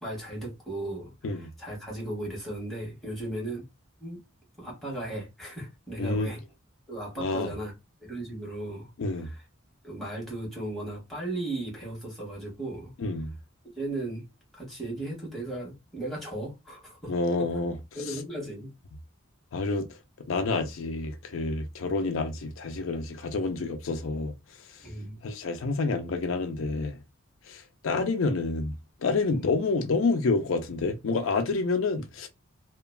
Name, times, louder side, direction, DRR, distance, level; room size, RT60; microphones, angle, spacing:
voice 1, 0.0-3.7 4.0-4.2 4.6-6.4 6.9-7.7 8.0-9.4 9.8-12.9 13.8-14.3 14.5-17.5 17.9-18.7 24.8-25.2 29.3-29.4, right 1 dB, ahead, 1.3 m, -36 dB
voice 2, 6.0-6.3 7.2-7.5 9.0-9.3 13.0-13.3 17.1-17.7 19.5-19.9 20.3-24.3 25.2-27.0 27.5-28.7 29.0-32.3, left 3 dB, 70° left, 0.5 m, -28 dB
3.0 x 2.2 x 2.3 m
head